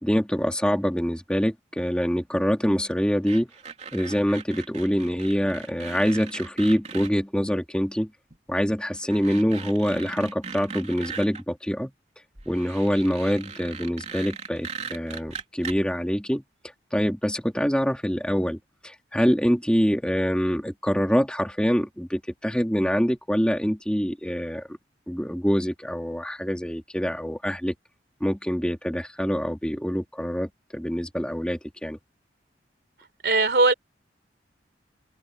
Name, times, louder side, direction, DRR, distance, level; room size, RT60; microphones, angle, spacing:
voice 1, 0.0-3.5 3.9-8.1 8.5-11.9 12.5-16.4 16.9-18.6 18.8-24.8 25.1-27.7 28.2-32.0, equal, 5° left, 2.2 m, -25 dB
sound 1, 3.3-7.1 8.3-8.4 8.9-11.4 12.4-15.8, right 5 dB, 35° right, 3.3 m, -39 dB
voice 2, 33.2-33.7, right 3 dB, 60° right, 3.7 m, -19 dB
head